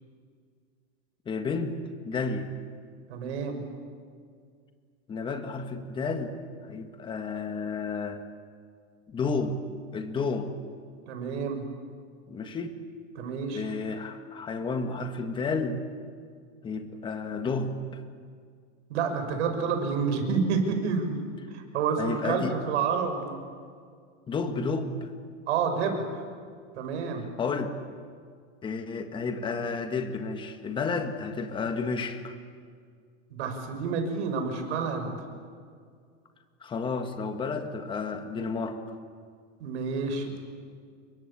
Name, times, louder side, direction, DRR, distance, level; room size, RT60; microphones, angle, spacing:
voice 1, 1.3-1.8 2.0-2.5 5.1-6.4 6.7-8.2 9.1-9.6 9.9-10.5 12.3-12.8 13.5-15.8 16.6-18.0 22.0-22.5 24.3-25.1 27.4-27.8 28.6-32.4 36.6-39.0, left 4 dB, 15° left, 7 dB, 1.6 m, -31 dB
voice 2, 3.1-3.6 11.1-11.6 13.1-13.6 18.9-23.4 25.5-26.2 26.8-27.2 33.3-35.2 39.6-40.3, right 5 dB, 70° right, 5 dB, 6.2 m, -29 dB
29.0 x 23.0 x 8.7 m, 2.1 s
supercardioid pair, 170°, 36 cm